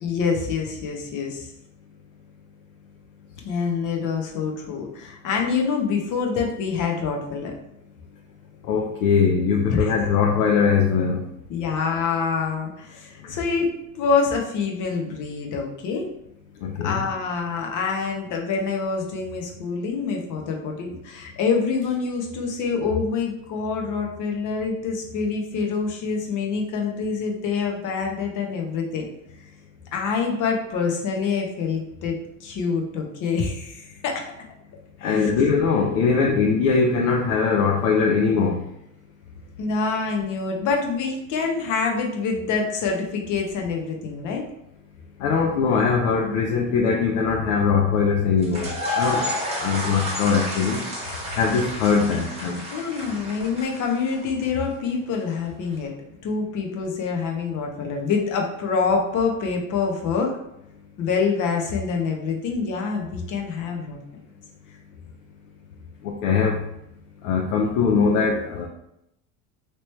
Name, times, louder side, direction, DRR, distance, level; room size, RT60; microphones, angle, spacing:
voice 1, 0.0-1.5 3.4-7.5 9.7-9.9 11.5-13.7 13.9-16.1 16.8-29.1 29.9-34.3 35.0-35.3 39.6-44.4 52.7-55.9 56.2-60.3 61.0-64.0, left 5 dB, 50° left, 2 dB, 0.9 m, -26 dB
voice 2, 8.7-11.2 13.2-13.3 16.6-17.0 35.0-38.6 45.2-49.3 49.6-50.8 51.4-52.6 66.0-66.6 67.2-68.7, left 5 dB, 85° left, 0 dB, 0.6 m, -21 dB
sound 1, 48.4-54.4, left 1 dB, 15° right, 1.3 m, -30 dB
3.1 x 2.9 x 3.1 m, 0.81 s
supercardioid pair, 110°, 41 cm